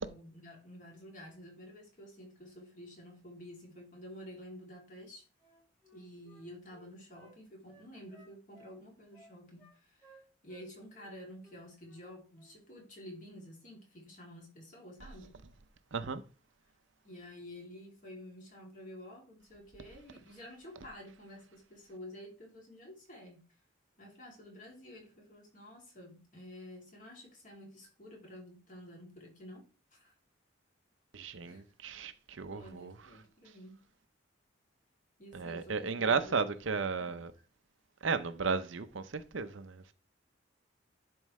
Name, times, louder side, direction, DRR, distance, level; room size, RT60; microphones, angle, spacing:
voice 1, 0.0-5.3 5.9-15.4 17.0-23.4 24.0-29.7 29.9-30.1 31.4-31.6 32.5-33.8 35.2-36.5 36.9-37.1, left 1 dB, 40° left, 2.8 m, -50 dB
Wind instrument woodwind instrument, 5.4-7.4 7.7-8.8 9.1-9.8 10.0-10.7 10.9-11.1 11.4-12.0 12.3-12.5, right 1 dB, 10° left, 2.2 m, -61 dB
voice 2, 15.9-16.2 31.1-32.9 35.3-37.3 38.0-39.9, right 5 dB, 75° right, 0.7 m, -34 dB
11.0 x 4.6 x 3.2 m
head